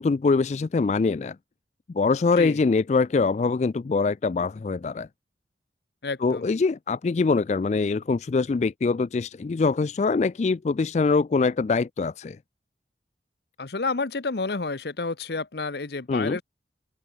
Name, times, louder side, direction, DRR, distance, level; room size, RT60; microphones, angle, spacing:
voice 1, 0.0-1.4 1.9-5.1 6.2-12.4 16.1-16.4, left 4 dB, 40° left, 0.3 m, -23 dB
voice 2, 6.0-6.5 13.6-16.4, left 3 dB, 65° left, 0.9 m, -30 dB
open air
head